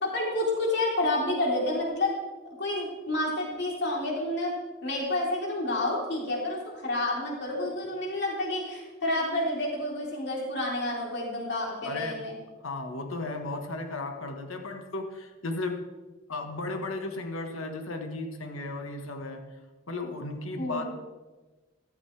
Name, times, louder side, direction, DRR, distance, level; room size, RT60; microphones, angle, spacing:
voice 1, 0.0-2.1 2.6-4.5 4.8-12.4 20.6-20.9, left 1 dB, 55° left, -3 dB, 3.8 m, -29 dB
voice 2, 11.8-12.2 12.6-15.8 16.3-19.6 19.9-20.9, left 2 dB, 80° left, 4 dB, 1.5 m, -35 dB
14.5 x 13.5 x 3.4 m, 1.2 s
head